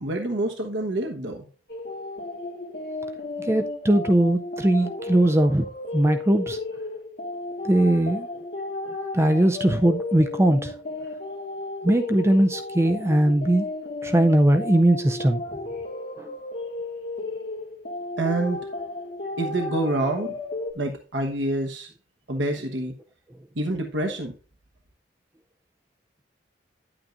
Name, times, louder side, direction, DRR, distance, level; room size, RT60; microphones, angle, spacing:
voice 1, 0.0-1.4 18.2-18.6 19.4-20.4 20.8-21.9 22.3-22.9 23.6-24.3, right 2 dB, 80° right, 1.1 m, -27 dB
sound 1, 1.7-20.7, left 2 dB, 55° left, 2.1 m, -34 dB
voice 2, 3.4-6.6 7.6-8.3 9.1-10.7 11.8-13.7 14.0-15.4 16.2-16.3, right 1 dB, 15° right, 0.4 m, -20 dB
10.5 x 8.7 x 2.5 m
head